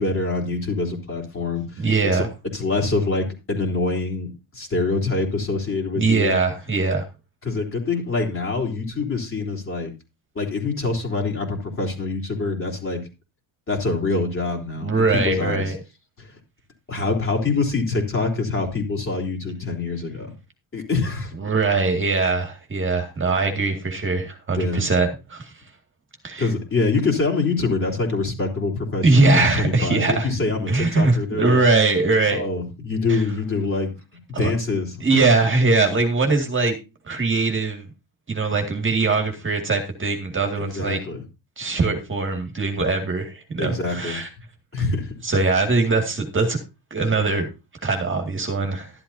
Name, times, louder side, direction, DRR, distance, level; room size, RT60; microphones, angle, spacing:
voice 1, 0.0-2.2 2.5-6.3 7.4-9.9 10.4-13.0 13.7-15.7 16.2-16.4 16.9-20.3 20.7-21.3 24.5-24.8 26.4-31.6 32.3-33.9 34.3-35.2 40.6-41.2 43.6-44.2 44.7-45.2, left 3 dB, 30° left, 0 dB, 3.6 m, -25 dB
voice 2, 1.8-2.3 6.0-7.0 14.8-15.8 21.4-25.5 26.2-26.5 29.0-30.3 30.7-32.4 33.1-33.2 34.3-34.5 35.0-36.8 37.1-37.9 38.3-41.0 41.6-44.3 45.2-46.6 46.9-47.5 47.8-48.9, right 3 dB, 25° right, 4 dB, 2.2 m, -21 dB
12.5 x 11.5 x 2.7 m, 0.27 s
cardioid pair, 135°, 46 cm